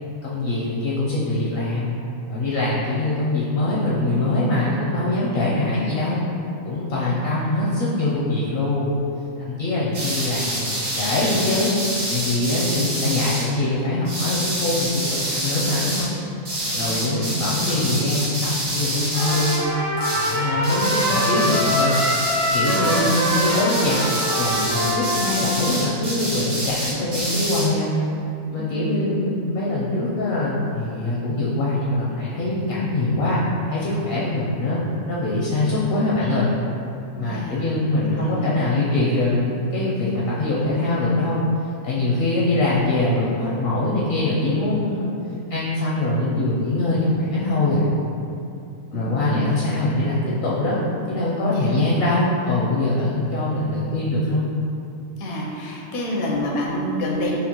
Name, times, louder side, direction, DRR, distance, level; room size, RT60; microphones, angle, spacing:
voice 1, 0.2-2.0 2.3-6.3 6.6-8.9 9.4-11.7 12.1-16.1 16.7-19.6 20.1-21.9 22.5-24.0 24.3-27.9 28.5-33.4 33.7-34.8 35.1-36.5 37.1-41.4 41.8-45.1 45.5-47.9 48.9-50.8 51.1-54.4, left 2 dB, 60° left, -6 dB, 0.6 m, -23 dB
voice 2, 6.8-7.2 16.7-17.1 22.9-23.2 28.6-29.1 37.2-37.6 38.0-38.5 48.9-49.4 51.5-51.7 55.2-57.4, left 1 dB, 85° left, -2 dB, 1.1 m, -28 dB
sound 1, 9.9-13.5 14.0-16.1 16.4-19.7 20.0-20.4 20.6-27.7, right 1 dB, 85° right, 1.7 m, -27 dB
Trumpet, 19.1-25.9, equal, 50° right, 1.0 m, -24 dB
5.1 x 2.1 x 2.9 m, 2.7 s
omnidirectional pair, 1.5 m